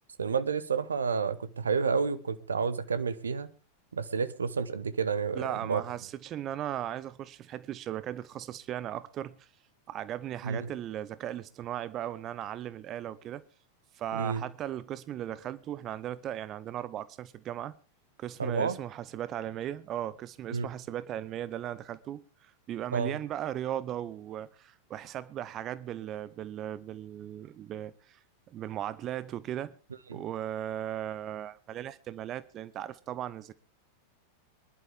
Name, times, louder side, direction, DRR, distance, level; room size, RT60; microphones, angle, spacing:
voice 1, 0.2-3.5 3.9-5.8 10.4-10.7 14.1-14.4 18.4-18.8 20.5-20.7 22.9-23.2 30.1-30.2, right 5 dB, 70° right, 1.0 m, -30 dB
voice 2, 5.3-9.5 9.9-13.4 13.9-17.7 18.2-28.2 28.5-29.8 30.1-33.5, right 11 dB, 30° right, 0.6 m, -37 dB
23.0 x 11.5 x 3.6 m
figure-of-eight pair, 90°, 0 cm